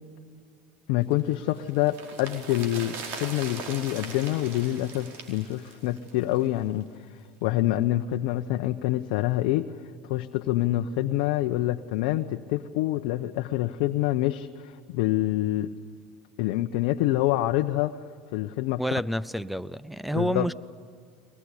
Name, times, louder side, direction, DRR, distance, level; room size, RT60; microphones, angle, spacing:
voice 1, 0.9-6.8 7.4-9.7 10.0-15.7 16.4-18.0 18.3-18.8 20.1-20.5, left 15 dB, 70° left, 0.9 m, -26 dB
sound 1, 1.1-6.5 6.8-6.9, right 4 dB, 60° right, 4.6 m, -40 dB
voice 2, 18.8-20.5, equal, ahead, 0.6 m, -29 dB
22.5 x 20.5 x 9.9 m
hypercardioid pair, 100°, 4 cm